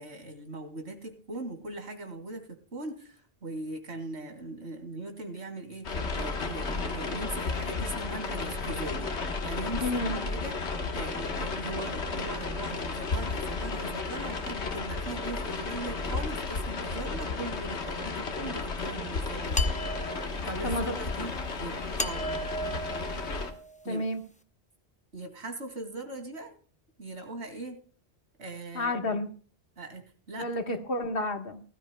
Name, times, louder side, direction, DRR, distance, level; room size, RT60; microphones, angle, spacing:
voice 1, 0.0-9.1 9.4-10.6 10.9-19.7 20.4-21.3 21.6-22.3 23.8-24.0 25.1-26.5 27.0-27.8 28.4-28.9 29.8-30.5, right 2 dB, 90° right, 5 dB, 2.8 m, -40 dB
sound 1, 5.8-23.5, left 3 dB, 85° left, 1.6 m, -33 dB
voice 2, 9.8-10.2 20.6-20.9 23.9-24.2 28.7-29.3 30.4-31.6, left 1 dB, 60° left, 6 dB, 1.6 m, -30 dB
sound 2, 19.5-20.6 22.0-23.9, right 1 dB, 10° left, 0.6 m, -36 dB
19.5 x 13.5 x 2.2 m, 0.41 s
omnidirectional pair, 1.1 m